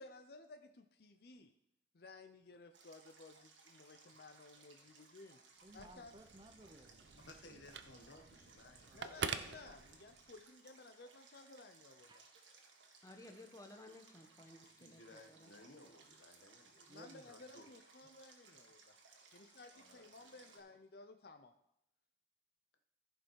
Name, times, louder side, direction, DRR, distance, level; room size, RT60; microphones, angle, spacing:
voice 1, 0.0-1.5 1.9-5.4 5.7-6.1 8.9-12.2 16.9-19.0 19.3-21.5, left 3 dB, 55° left, 7 dB, 0.6 m, -57 dB
Stream, 2.7-20.6, right 4 dB, 85° right, 1.6 m, -64 dB
voice 2, 5.6-7.3 8.9-9.2 12.1-12.5 16.1-16.2 16.9-17.3, right 1 dB, 25° right, 7 dB, 0.7 m, -60 dB
Telephone, 5.6-10.4, right 6 dB, 70° right, 0.6 m, -47 dB
voice 3, 7.3-9.0 14.6-16.9 17.3-17.7 19.7-20.3, left 2 dB, 75° left, 5 dB, 1.3 m, -59 dB
voice 4, 13.0-15.5, left 2 dB, 20° left, 3 dB, 1.0 m, -57 dB
14.5 x 5.4 x 4.7 m, 0.82 s
head